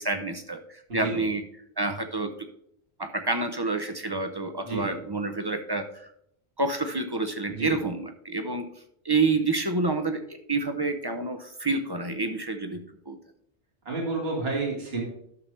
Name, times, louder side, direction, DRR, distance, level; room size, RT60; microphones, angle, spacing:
voice 1, 0.0-1.4 1.8-2.3 3.0-6.1 6.6-8.7 9.0-10.2 10.5-13.2, right 3 dB, 30° right, 7 dB, 0.5 m, -28 dB
voice 2, 0.9-1.3 4.6-5.0 7.5-7.9 13.9-15.0, right 3 dB, 60° right, -1 dB, 2.2 m, -30 dB
12.0 x 6.4 x 3.3 m, 0.72 s
omnidirectional pair, 1.1 m